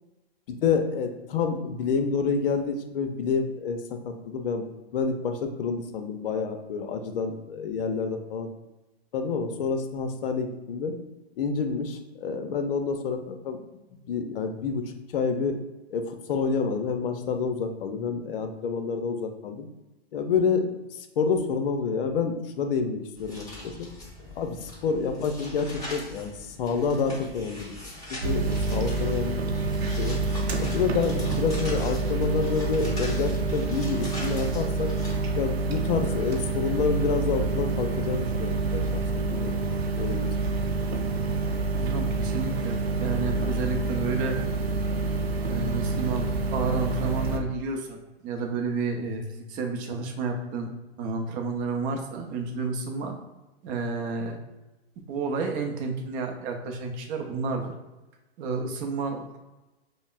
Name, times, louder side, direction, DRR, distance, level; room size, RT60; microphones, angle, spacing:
voice 1, 0.5-4.7 4.9-8.5 9.1-11.0 11.4-13.6 13.9-14.8 15.1-15.6 15.9-19.7 20.1-23.9 24.3-30.2 30.6-34.9 35.3-39.6 39.9-40.3, left 5 dB, 60° left, 7 dB, 0.6 m, -28 dB
sound 1, 23.2-35.2, left 1 dB, 10° left, 1.4 m, -42 dB
sound 2, 28.2-47.4, right 3 dB, 75° right, 0.6 m, -27 dB
voice 2, 41.7-44.4 45.5-50.7 51.0-53.2 53.6-54.4 55.1-57.7 58.4-59.4, right 4 dB, 25° right, 3 dB, 0.5 m, -31 dB
5.2 x 2.1 x 2.4 m, 1.1 s
hypercardioid pair, 120°, 31 cm